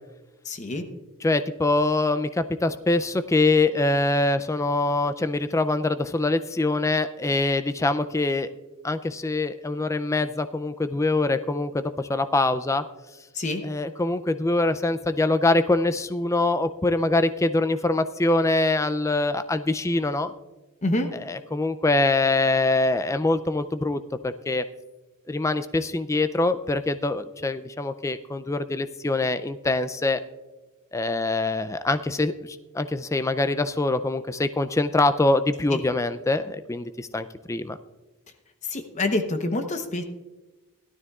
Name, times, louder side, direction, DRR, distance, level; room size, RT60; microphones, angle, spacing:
voice 1, 0.4-0.9 13.3-13.6 20.8-21.1 35.7-35.8 38.6-40.0, left 2 dB, 35° left, 6 dB, 0.8 m, -27 dB
voice 2, 1.2-8.5 8.8-12.8 13.6-20.3 21.3-24.6 25.3-30.2 30.9-37.8, left 2 dB, 15° left, 11 dB, 0.3 m, -24 dB
17.0 x 12.5 x 2.4 m, 1.1 s
head